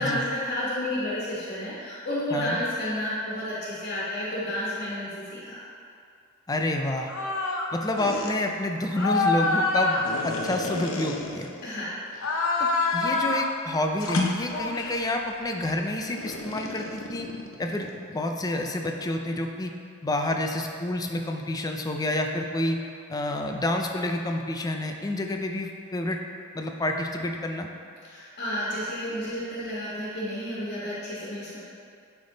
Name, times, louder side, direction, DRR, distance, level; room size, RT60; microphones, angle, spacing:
voice 1, 0.0-5.6 11.6-11.9 28.1-31.6, left 1 dB, 45° left, -9 dB, 1.4 m, -31 dB
voice 2, 6.5-7.1 7.7-11.5 12.6-17.3 17.6-19.7 20.0-22.8 23.1-26.2 26.5-27.7, left 1 dB, 20° left, 3 dB, 0.4 m, -29 dB
sound 1, 7.1-7.7 8.0-8.3 8.9-11.7 12.1-13.5 14.0-15.1 16.2-18.0, left 3 dB, 70° left, 0.7 m, -27 dB
10.0 x 3.6 x 4.0 m, 2.4 s
head